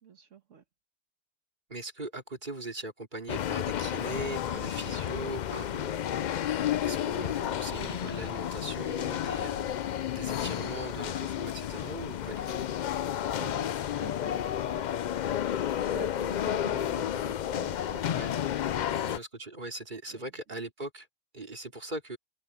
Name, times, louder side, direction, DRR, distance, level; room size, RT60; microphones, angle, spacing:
voice 1, 0.0-0.6 6.8-7.7 13.4-18.5 20.1-20.3, right 7 dB, 85° right, 1.7 m, -48 dB
voice 2, 1.7-6.0 6.8-12.6 18.1-18.3 19.1-21.1 21.3-22.2, right 2 dB, 40° right, 3.6 m, -40 dB
sound 1, 3.3-19.2, left 10 dB, 65° left, 0.4 m, -31 dB
omnidirectional pair, 1.3 m